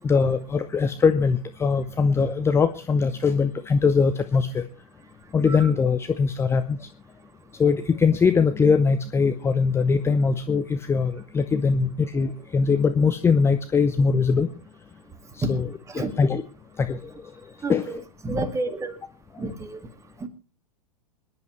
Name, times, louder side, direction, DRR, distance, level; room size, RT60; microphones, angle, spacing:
voice 1, 0.0-4.6 5.3-6.9 7.6-14.5 15.4-16.4 16.8-17.1 17.7-18.0, left 5 dB, 10° left, 9 dB, 0.7 m, -22 dB
voice 2, 17.6-18.0 18.2-19.0 19.4-19.8 20.2-20.3, right 2 dB, 15° right, 8 dB, 2.0 m, -29 dB
26.5 x 10.5 x 3.1 m, 0.34 s
figure-of-eight pair, 100°, 21 cm